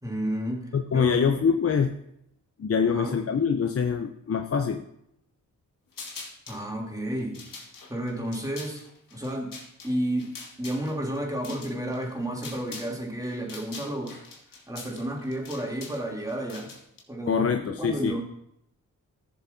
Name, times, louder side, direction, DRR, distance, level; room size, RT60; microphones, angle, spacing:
voice 1, 0.0-0.7 0.9-1.3 2.8-3.2 6.5-7.4 7.9-8.8 9.1-9.5 9.8-10.3 10.6-14.2 14.7-16.7 17.1-18.2, right 1 dB, 10° right, -1 dB, 3.1 m, -31 dB
voice 2, 0.7-1.9 2.6-4.8 17.3-18.2, left 6 dB, 40° left, 6 dB, 0.7 m, -24 dB
sound 1, 5.9-6.6 7.2-13.0 13.2-17.0, left 4 dB, 70° left, 2.0 m, -44 dB
14.0 x 7.1 x 2.8 m, 0.74 s
supercardioid pair, 50°, 35 cm